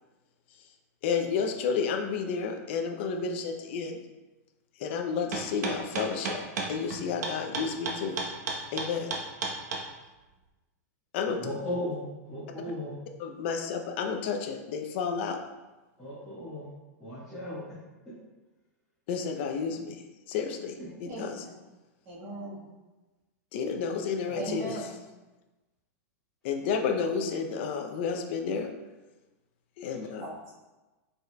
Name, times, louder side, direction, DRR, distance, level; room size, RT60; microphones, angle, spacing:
voice 1, 1.0-4.0 4.8-6.4 6.7-8.2 8.7-9.1 11.1-11.4 12.6-12.7 13.2-15.4 19.1-21.4 23.5-24.8 26.4-28.7 29.8-30.3, left 6 dB, 45° left, 5 dB, 0.5 m, -31 dB
sound 1, 5.3-9.8, right 4 dB, 80° right, 0.9 m, -32 dB
voice 2, 11.4-12.9 16.0-16.6 17.0-17.6, left 1 dB, ahead, -16 dB, 1.4 m, -36 dB
voice 3, 21.0-21.6 22.0-22.6 24.3-24.9 30.0-30.5, right 1 dB, 30° right, -6 dB, 1.3 m, -39 dB
5.2 x 4.0 x 2.2 m, 1.1 s
supercardioid pair, 165°, 9 cm